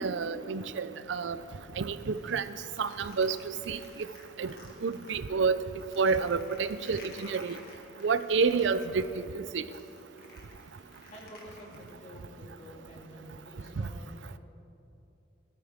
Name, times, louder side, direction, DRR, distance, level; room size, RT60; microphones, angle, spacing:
voice 1, 0.0-1.4 1.8-2.4 2.8-3.8 4.4-4.5 4.8-5.6 6.0-7.6 8.0-9.1 9.3-9.6, right 5 dB, 85° right, 13 dB, 0.5 m, -29 dB
sound 1, 2.0-5.1 5.5-12.2, left 2 dB, 55° left, 2.0 m, -53 dB
voice 2, 11.1-14.4, equal, 35° left, -3 dB, 2.6 m, -49 dB
18.5 x 13.5 x 3.6 m, 2.7 s
head